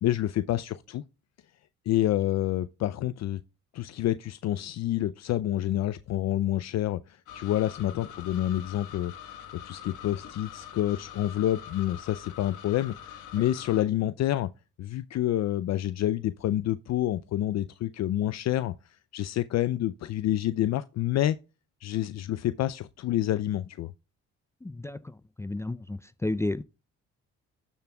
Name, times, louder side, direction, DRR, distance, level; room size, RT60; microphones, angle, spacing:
voice 1, 0.0-1.0 1.9-3.4 3.7-9.1 9.7-14.5 14.8-18.7 19.1-21.4 21.8-23.9, left 13 dB, 60° left, 0.5 m, -28 dB
sound 1, 7.3-13.8, left 9 dB, 80° left, 1.3 m, -44 dB
voice 2, 24.6-25.0 25.4-26.6, left 2 dB, 10° left, 0.4 m, -31 dB
13.0 x 7.1 x 2.2 m
cardioid pair, 90°, 30 cm